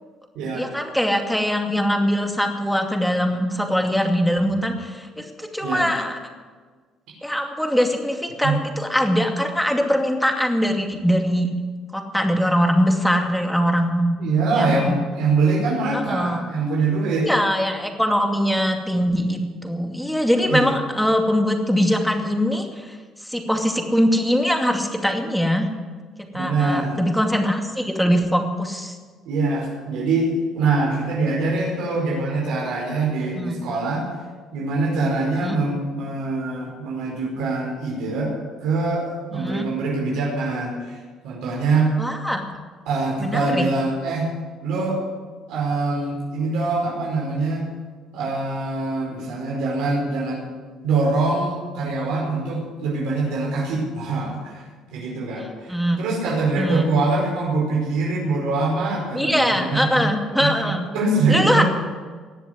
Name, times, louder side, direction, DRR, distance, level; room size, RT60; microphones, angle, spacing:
voice 1, 0.5-6.2 7.2-11.5 11.9-14.1 14.5-15.0 15.9-16.4 17.2-25.7 26.3-29.0 33.3-33.6 35.4-35.6 39.3-39.6 42.0-42.4 43.2-43.7 55.4-56.0 56.6-56.9 59.1-60.8 61.3-61.6, equal, ahead, 3 dB, 2.4 m, -22 dB
voice 2, 14.2-17.3 20.4-20.7 26.3-27.0 29.2-30.3 30.5-34.1 34.5-41.0 41.2-41.9 42.8-44.3 44.6-45.0 45.5-47.7 48.1-50.4 50.8-54.7 54.9-61.6, right 3 dB, 80° right, -2 dB, 4.9 m, -24 dB
19.0 x 7.3 x 9.7 m, 1.5 s
cardioid pair, 90°, 0 cm